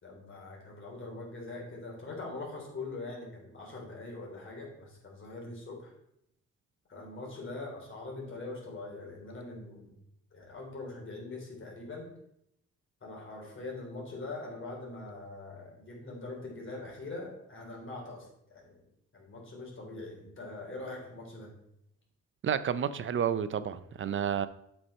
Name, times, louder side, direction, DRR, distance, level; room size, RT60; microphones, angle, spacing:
voice 1, 0.0-5.9 6.9-9.9 10.3-12.1 13.0-18.8 19.1-21.5, left 2 dB, 40° left, -2 dB, 3.6 m, -42 dB
voice 2, 22.4-24.5, right 8 dB, 40° right, 14 dB, 0.6 m, -30 dB
8.1 x 6.2 x 4.3 m, 0.76 s
cardioid pair, 90°, 30 cm